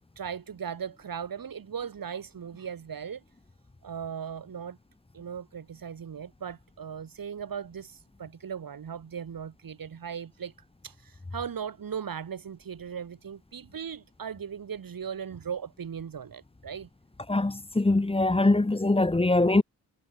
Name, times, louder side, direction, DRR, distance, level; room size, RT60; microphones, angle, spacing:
voice 1, 0.2-3.2 3.8-4.8 5.1-10.5 10.8-16.9, right 7 dB, 60° right, 4.1 m, -38 dB
voice 2, 17.3-19.6, left 2 dB, 15° left, 1.2 m, -23 dB
supercardioid pair, 55°, 39 cm